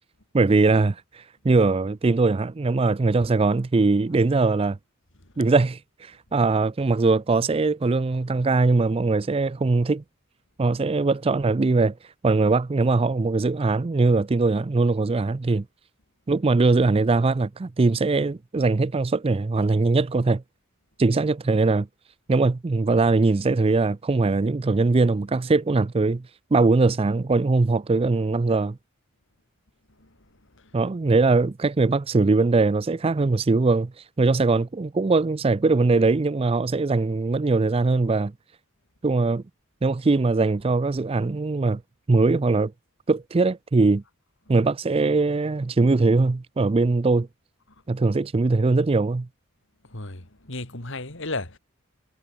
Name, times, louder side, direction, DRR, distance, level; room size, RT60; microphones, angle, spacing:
voice 1, 0.3-4.8 5.4-10.0 10.6-11.9 12.2-15.6 16.3-20.4 21.0-21.9 22.3-26.2 26.5-28.8 30.7-33.9 34.2-38.3 39.0-39.4 39.8-41.8 42.1-42.7 43.1-44.0 44.5-47.3 47.9-49.3, right 3 dB, 25° right, 0.4 m, -21 dB
voice 2, 49.9-51.6, left 2 dB, 60° left, 3.1 m, -33 dB
head